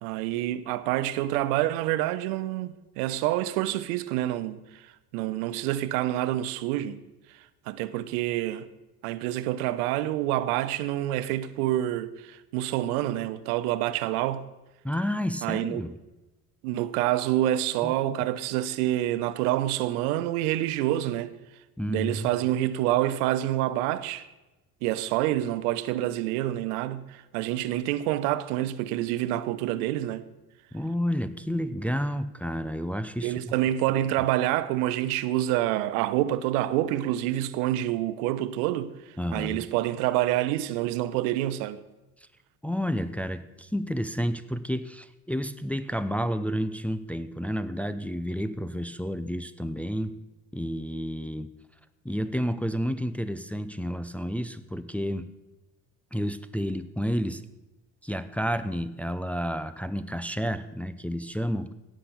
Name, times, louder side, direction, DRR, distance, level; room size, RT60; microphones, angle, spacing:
voice 1, 0.0-4.8 5.1-7.0 7.7-8.6 9.0-14.4 15.4-15.8 16.6-21.3 21.9-24.3 24.8-30.3 33.2-38.9 39.3-41.8, right 14 dB, 70° right, 0.8 m, -27 dB
voice 2, 14.8-16.0 17.8-18.2 21.8-22.3 30.7-33.3 39.2-39.6 42.6-50.2 50.5-51.5 52.0-55.3 56.1-57.4 58.0-61.7, equal, 5° left, 0.6 m, -30 dB
17.0 x 6.3 x 6.9 m
hypercardioid pair, 60°, 47 cm